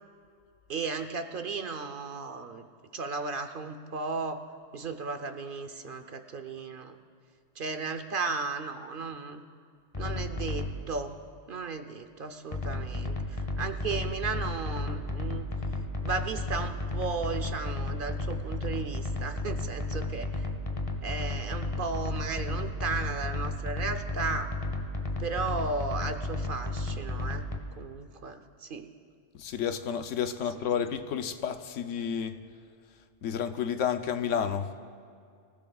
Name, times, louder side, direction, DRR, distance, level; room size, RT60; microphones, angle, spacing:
voice 1, 0.7-2.7 2.9-4.5 4.7-7.0 7.6-9.4 10.0-11.2 11.5-15.5 16.0-20.5 21.0-24.5 25.2-27.5 27.8-28.9, right 4 dB, 50° right, 8 dB, 0.8 m, -35 dB
sound 1, 9.9-10.8 12.5-27.6, left 2 dB, 30° left, 1.1 m, -33 dB
voice 2, 29.3-32.4 33.2-34.7, left 8 dB, 90° left, 8 dB, 1.1 m, -31 dB
25.5 x 15.5 x 2.3 m, 2.3 s
omnidirectional pair, 1.3 m